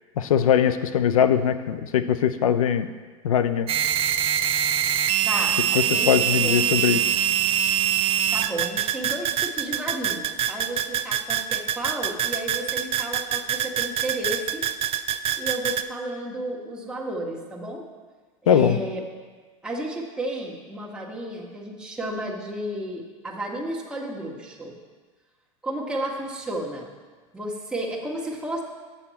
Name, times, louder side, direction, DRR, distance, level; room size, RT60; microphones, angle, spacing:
voice 1, 0.2-2.9 3.2-3.7 5.7-7.2 18.5-18.8, left 9 dB, 85° left, 11 dB, 0.5 m, -21 dB
sound 1, 3.7-15.8, right 10 dB, 35° right, 0.4 m, -24 dB
voice 2, 5.2-6.8 8.3-14.7 15.4-17.9 18.4-19.0 19.6-24.7 25.6-26.9 27.3-28.6, right 1 dB, 5° right, -3 dB, 1.5 m, -32 dB
7.8 x 7.0 x 4.2 m, 1.4 s
hypercardioid pair, 100°, 18 cm